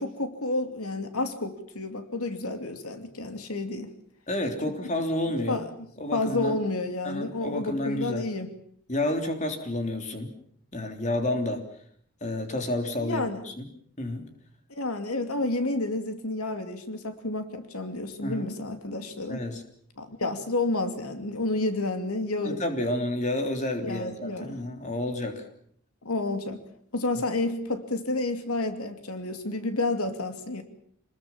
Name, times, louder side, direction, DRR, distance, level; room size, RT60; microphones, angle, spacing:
voice 1, 0.0-3.9 4.8-4.9 5.5-5.9 6.1-8.5 13.0-13.4 14.7-19.5 20.0-22.6 23.8-24.6 26.0-26.6 26.9-30.6, left 2 dB, 85° left, 7 dB, 2.7 m, -30 dB
voice 2, 4.3-5.6 6.0-6.6 7.0-8.3 8.9-10.3 10.7-11.6 12.2-13.7 14.0-14.3 18.2-18.5 19.3-19.6 22.4-25.4, left 1 dB, 35° left, 5 dB, 3.4 m, -30 dB
27.5 x 20.5 x 7.3 m, 0.64 s
head